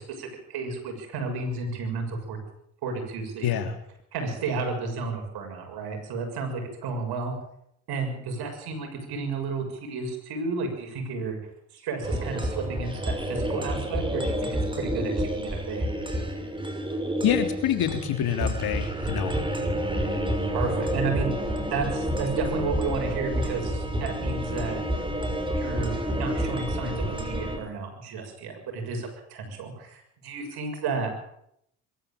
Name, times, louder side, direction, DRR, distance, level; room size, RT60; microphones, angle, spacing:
voice 1, 0.0-2.4 2.8-3.5 4.1-7.3 7.9-11.4 11.7-15.9 20.5-21.3 21.7-24.8 25.6-31.1, right 4 dB, 70° right, 4 dB, 6.8 m, -32 dB
voice 2, 3.4-3.8 17.2-19.4, left 9 dB, 65° left, 7 dB, 3.3 m, -26 dB
sound 1, 12.0-27.6, equal, 10° right, 6.2 m, -29 dB
23.0 x 13.5 x 8.9 m, 0.74 s
hypercardioid pair, 55°, 40 cm